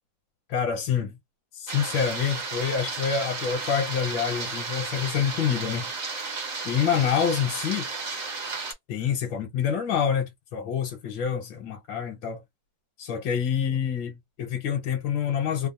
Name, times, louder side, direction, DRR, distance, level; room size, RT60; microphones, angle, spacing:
voice 1, 0.5-1.2 1.5-5.9 6.6-7.9 8.9-12.4 13.0-15.7, left 7 dB, 80° left, 1.5 m, -27 dB
sound 1, 1.7-8.7, right 4 dB, 45° right, 1.1 m, -33 dB
3.4 x 2.0 x 2.5 m
omnidirectional pair, 2.1 m